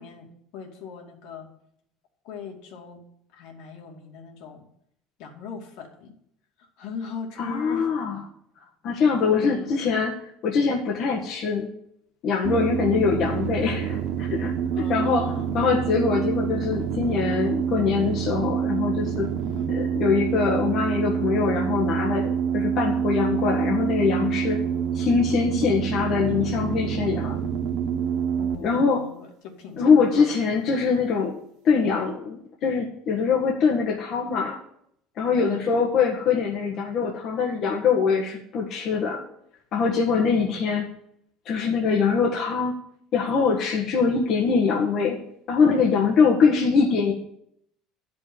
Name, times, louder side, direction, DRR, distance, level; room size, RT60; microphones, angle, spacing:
voice 1, 0.0-1.5 2.2-3.0 3.3-4.7 5.2-6.1 6.6-7.9 9.3-9.8 14.7-15.5 19.4-19.8 28.4-30.3 35.3-35.6 40.1-40.6, left 5 dB, 70° left, 2 dB, 2.5 m, -39 dB
voice 2, 7.4-8.2 8.8-10.1 10.4-11.7 12.2-19.3 19.7-24.6 24.9-27.4 28.6-29.0 29.8-31.4 31.6-34.6 35.2-39.2 39.7-40.9 41.4-42.7 43.1-45.2 45.5-47.1, left 5 dB, 50° left, -1 dB, 1.6 m, -23 dB
sound 1, 12.4-28.6, right 8 dB, 65° right, 1.7 m, -27 dB
11.0 x 5.4 x 8.6 m, 0.72 s
cardioid pair, 135°, 0 cm